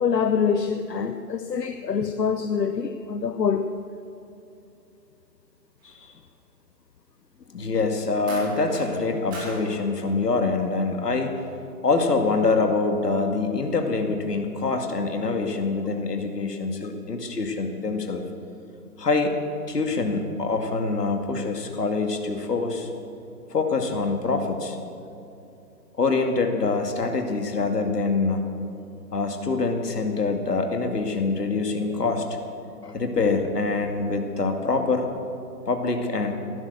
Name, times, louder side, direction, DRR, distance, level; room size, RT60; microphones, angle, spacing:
voice 1, 0.0-3.7, left 6 dB, 90° left, 8 dB, 1.0 m, -25 dB
sound 1, 5.8-6.1 8.3-8.9 9.3-9.7 10.6-10.8, right 1 dB, 10° right, 2.6 m, -39 dB
voice 2, 7.5-11.4 11.8-18.3 19.0-19.4 19.7-22.9 23.5-24.8 26.0-28.5 29.1-32.4 32.8-35.1 35.7-36.3, left 3 dB, 70° left, 4 dB, 2.3 m, -25 dB
16.0 x 12.0 x 6.7 m, 2.7 s
hypercardioid pair, 170°, 49 cm